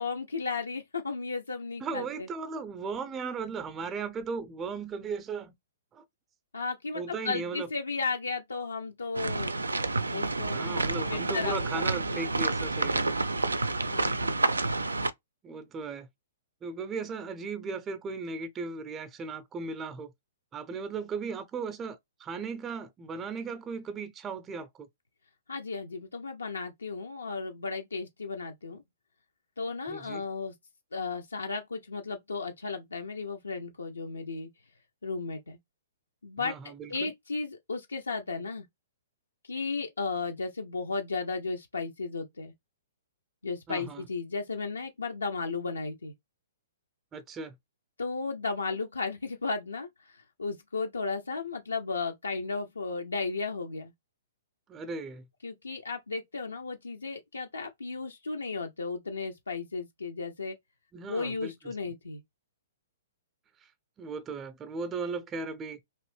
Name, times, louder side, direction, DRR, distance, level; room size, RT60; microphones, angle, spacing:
voice 1, 0.0-2.3 6.5-9.5 10.1-10.6 11.1-12.2 13.9-14.4 25.5-28.8 29.6-30.5 30.9-34.5 35.0-35.6 36.2-36.5 36.9-38.6 39.4-42.5 43.4-46.1 48.0-53.9 55.4-60.6 61.1-62.2, left 4 dB, 85° left, 0.5 m, -34 dB
voice 2, 1.8-5.5 5.9-6.0 6.9-7.7 10.5-13.1 15.4-16.1 16.6-20.1 20.5-24.9 29.9-30.2 36.4-37.1 43.7-44.0 47.1-47.5 54.7-55.2 60.9-61.5 64.0-65.8, right 4 dB, 20° right, 0.5 m, -37 dB
sound 1, 9.1-15.1, right 3 dB, 85° right, 0.4 m, -29 dB
2.9 x 2.6 x 3.2 m
figure-of-eight pair, 120°, 0 cm